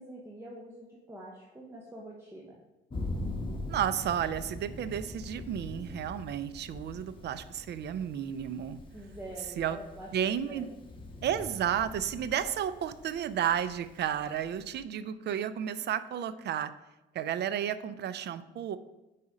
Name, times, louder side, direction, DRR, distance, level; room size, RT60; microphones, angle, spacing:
voice 1, 0.0-2.6 5.8-5.9 8.9-10.1 10.5-10.7, right 1 dB, 10° right, -2 dB, 0.9 m, -46 dB
Thunder, 2.9-14.8, left 2 dB, 25° left, 1.2 m, -43 dB
voice 2, 3.7-8.8 9.4-10.7 11.2-16.7 17.1-18.8, right 9 dB, 60° right, 14 dB, 0.4 m, -32 dB
4.8 x 4.2 x 5.0 m, 1.0 s
cardioid pair, 90°, 20 cm